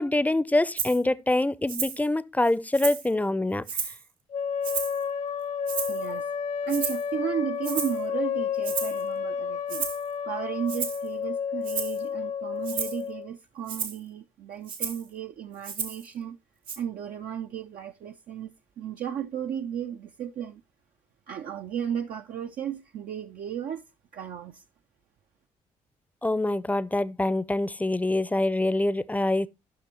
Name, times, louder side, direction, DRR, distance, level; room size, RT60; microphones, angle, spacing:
voice 1, 0.0-3.6 26.2-29.5, left 2 dB, 10° left, 0.6 m, -25 dB
Rattle (instrument), 0.8-1.0 1.7-2.0 2.4-3.1 3.6-4.0 4.6-5.0 5.7-6.1 6.7-7.1 7.6-8.0 8.6-9.0 9.7-10.0 10.7-11.1 11.6-12.0 12.6-13.0 13.7-14.0 14.7-15.0 15.6-16.1 16.7-16.8, right 6 dB, 80° right, 1.4 m, -33 dB
sound 1, 4.3-13.3, left 7 dB, 40° left, 0.8 m, -31 dB
voice 2, 5.9-6.3 6.6-9.9 10.2-16.4 16.8-20.6 21.3-23.8 24.1-24.6, right 9 dB, 55° right, 0.5 m, -34 dB
14.0 x 5.9 x 3.0 m
hypercardioid pair, 45°, 17 cm